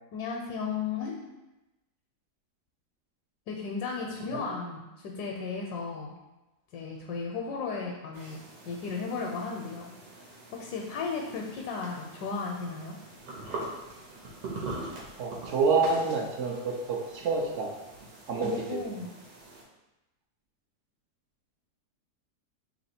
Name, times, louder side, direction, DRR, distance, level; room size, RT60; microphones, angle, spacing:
voice 1, 0.1-1.3 3.5-6.2 6.7-9.9 10.5-13.0 18.4-19.1, left 5 dB, 80° left, 0 dB, 1.1 m, -35 dB
sound 1, 8.1-19.6, right 2 dB, 85° right, 1.5 m, -43 dB
voice 2, 15.2-17.8 18.3-18.8, right 4 dB, 65° right, 0 dB, 0.8 m, -28 dB
3.1 x 2.9 x 4.2 m, 1.0 s
omnidirectional pair, 1.8 m